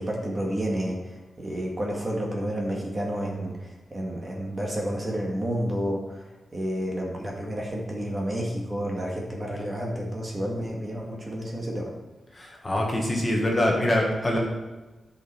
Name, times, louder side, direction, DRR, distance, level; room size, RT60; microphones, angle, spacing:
voice 1, 0.0-6.3 6.5-11.9, equal, 20° right, -1 dB, 1.7 m, -30 dB
voice 2, 12.3-14.4, left 1 dB, 20° left, -1 dB, 1.6 m, -24 dB
13.0 x 5.5 x 4.3 m, 1.2 s
wide cardioid pair, 160°, 0 cm